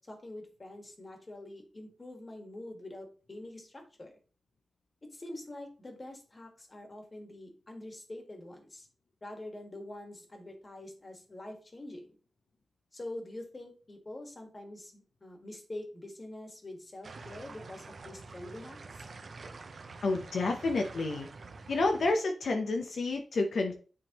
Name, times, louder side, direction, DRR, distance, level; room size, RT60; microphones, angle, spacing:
voice 1, 0.1-4.1 5.1-8.9 9.2-12.2 12.9-19.0, left 1 dB, 30° left, 3 dB, 1.7 m, -45 dB
sound 1, 17.0-22.1, right 3 dB, 55° right, 0.7 m, -47 dB
voice 2, 20.0-21.3 21.7-23.7, left 3 dB, 70° left, 3 dB, 0.7 m, -29 dB
9.5 x 3.6 x 3.0 m, 0.39 s
wide cardioid pair, 100°, 0 cm